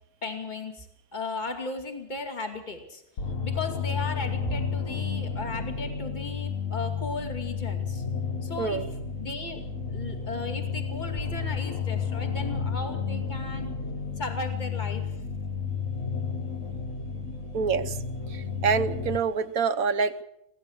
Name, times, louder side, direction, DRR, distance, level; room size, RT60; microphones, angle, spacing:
voice 1, 0.2-0.9 1.1-3.0 3.4-8.0 8.4-8.8 9.2-9.6 9.9-13.7 14.2-15.2, left 3 dB, 30° left, 5 dB, 2.6 m, -36 dB
sound 1, 3.2-19.2, left 6 dB, 70° left, 1.8 m, -32 dB
voice 2, 17.5-18.0 18.3-20.2, right 5 dB, 80° right, 11 dB, 1.5 m, -26 dB
23.0 x 16.5 x 7.3 m, 0.78 s
omnidirectional pair, 1.4 m